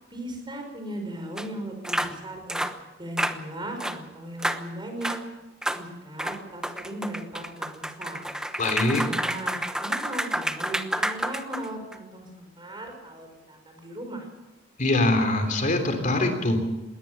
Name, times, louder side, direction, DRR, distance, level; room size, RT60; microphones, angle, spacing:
voice 1, 0.1-2.6 3.0-5.2 5.7-8.3 9.0-14.3, right 1 dB, 25° right, 4 dB, 5.6 m, -37 dB
sound 1, 1.4-1.5 1.8-2.1 2.5-2.8 3.2-3.4 3.8-4.0 4.4-4.6 5.0-5.2 5.6-5.8 6.2-11.9, right 1 dB, 5° right, 1.0 m, -29 dB
voice 2, 8.6-9.0 14.8-16.6, left 2 dB, 45° left, 6 dB, 3.4 m, -23 dB
21.5 x 18.0 x 7.0 m, 1.1 s
head